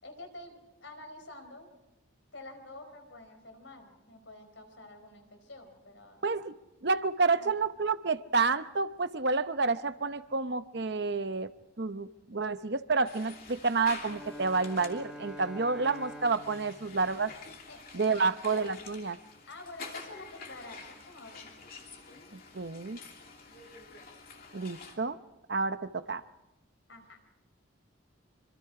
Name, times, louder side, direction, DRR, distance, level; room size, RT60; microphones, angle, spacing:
voice 1, 0.0-1.7 2.3-6.2 7.3-7.5 17.7-18.3 19.5-21.5 26.9-27.2, left 2 dB, 70° left, 6 dB, 4.5 m, -48 dB
voice 2, 6.2-6.5 6.8-11.5 11.8-17.3 17.9-19.2 22.5-23.0 24.5-25.2 25.5-26.2, right 4 dB, 55° right, 11 dB, 0.8 m, -29 dB
sound 1, 13.0-25.0, left 4 dB, 45° left, 2.8 m, -48 dB
Bowed string instrument, 13.9-18.0, equal, 5° right, 1.2 m, -47 dB
25.5 x 25.5 x 4.8 m, 0.96 s
head